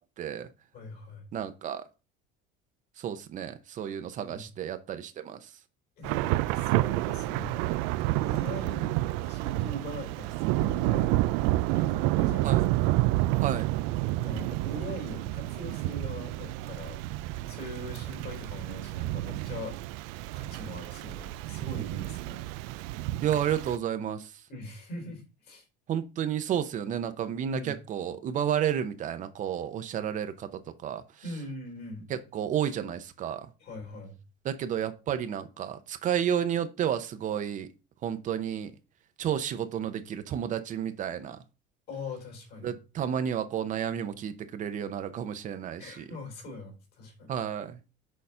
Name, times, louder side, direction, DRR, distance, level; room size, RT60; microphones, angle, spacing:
voice 1, 0.2-0.5 1.3-1.8 3.0-5.5 12.4-12.6 13.3-13.7 23.2-24.3 25.9-31.0 32.1-33.5 34.4-37.7 38.0-38.7 39.2-41.4 42.6-46.0 47.3-47.8, right 9 dB, 40° right, 0.7 m, -31 dB
voice 2, 0.7-1.2 4.2-4.5 6.0-7.6 8.2-12.6 14.2-17.0 17.5-19.8 20.3-22.4 24.5-25.6 27.4-27.8 31.2-32.1 33.6-34.2 41.9-42.7 45.8-47.3, left 1 dB, 55° left, 3.6 m, -42 dB
Thunder / Rain, 6.0-23.8, right 17 dB, 90° right, 0.4 m, -29 dB
6.5 x 4.0 x 5.5 m
cardioid pair, 150°, 20 cm